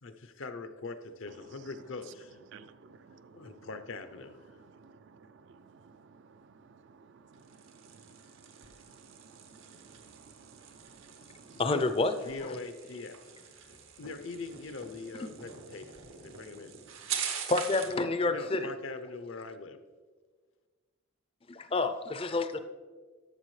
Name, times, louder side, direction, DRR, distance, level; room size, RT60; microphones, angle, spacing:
voice 1, 0.0-2.4 3.3-4.4 11.7-11.9 12.2-13.2 14.0-16.8 18.3-19.8, left 3 dB, 65° left, 9 dB, 0.6 m, -42 dB
voice 2, 2.5-3.6 4.7-4.9 5.2-5.3 5.7-6.0 7.3-7.4 7.9-8.0 8.9-11.6, right 5 dB, 55° right, 13 dB, 0.3 m, -56 dB
sound 1, 7.3-18.0, right 7 dB, 75° right, 0.9 m, -43 dB
voice 3, 11.6-12.1 12.4-12.6 17.5-18.7 21.5-22.6, left 3 dB, 25° left, 9 dB, 0.4 m, -29 dB
11.5 x 7.1 x 3.2 m, 1.5 s
head